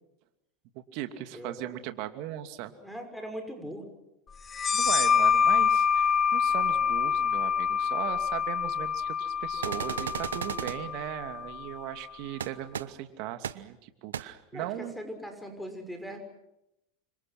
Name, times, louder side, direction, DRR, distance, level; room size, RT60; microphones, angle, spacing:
voice 1, 0.7-2.7 4.7-15.0, right 13 dB, 55° right, 8 dB, 2.7 m, -38 dB
voice 2, 2.8-3.9 14.5-16.2, equal, ahead, 6 dB, 6.4 m, -40 dB
sound 1, 4.5-11.8, left 7 dB, 25° left, 1.3 m, -26 dB
sound 2, 9.6-10.8 12.4-12.5 12.7-12.8 13.4-13.5 14.1-14.2, right 9 dB, 85° right, 1.0 m, -33 dB
30.0 x 26.0 x 6.2 m, 0.87 s
hypercardioid pair, 90°, 0 cm